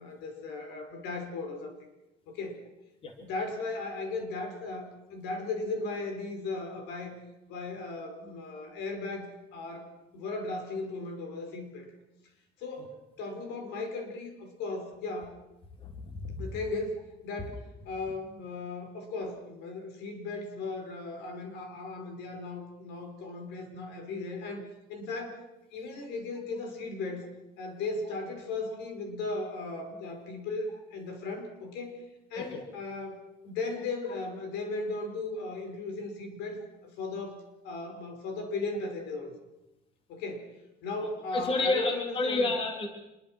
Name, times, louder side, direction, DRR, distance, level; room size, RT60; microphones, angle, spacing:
voice 1, 0.0-1.7 2.3-2.6 3.2-7.2 7.5-11.9 12.6-15.3 16.4-25.4 25.7-27.3 27.6-32.0 32.3-39.3 40.1-40.5 40.8-42.5, left 3 dB, 90° left, 5 dB, 5.5 m, -37 dB
voice 2, 15.8-16.4 32.4-32.6 41.0-42.9, left 2 dB, 30° left, 4 dB, 3.0 m, -30 dB
26.5 x 22.0 x 6.2 m, 0.95 s
cardioid pair, 180°, 17 cm